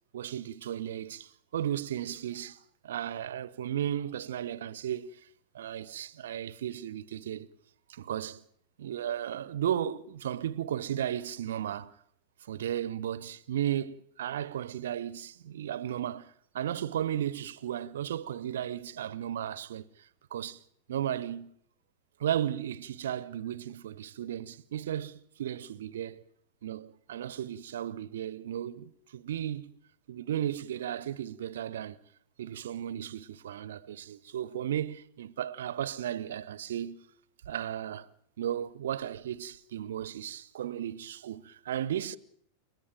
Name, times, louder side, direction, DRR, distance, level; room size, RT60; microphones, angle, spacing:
voice 1, 0.1-5.2 5.5-7.5 7.9-8.4 8.8-11.9 12.5-19.8 20.3-20.6 20.9-21.5 22.2-26.2 26.6-29.7 30.1-32.0 32.4-37.0 37.5-38.1 38.4-42.2, right 10 dB, 60° right, 0.8 m, -35 dB
29.5 x 11.0 x 9.1 m
figure-of-eight pair, 90°, 0 cm